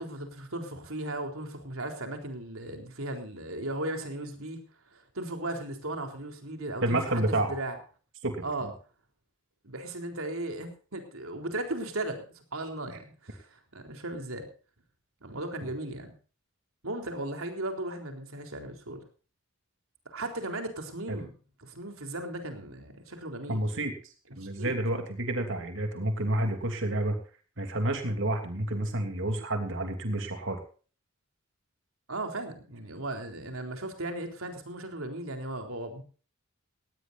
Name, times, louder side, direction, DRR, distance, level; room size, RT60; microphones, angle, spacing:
voice 1, 0.0-4.6 4.9-7.2 7.5-7.8 8.4-8.7 9.6-14.5 15.2-16.1 16.8-19.0 20.1-21.3 21.6-23.6 24.4-24.8 32.1-36.0, right 1 dB, 85° right, 4 dB, 3.8 m, -36 dB
voice 2, 6.8-7.6 8.2-8.7 21.1-21.2 23.5-23.9 24.4-27.2 27.6-30.6, right 1 dB, 65° right, 5 dB, 3.1 m, -29 dB
18.5 x 17.5 x 2.7 m, 0.38 s
head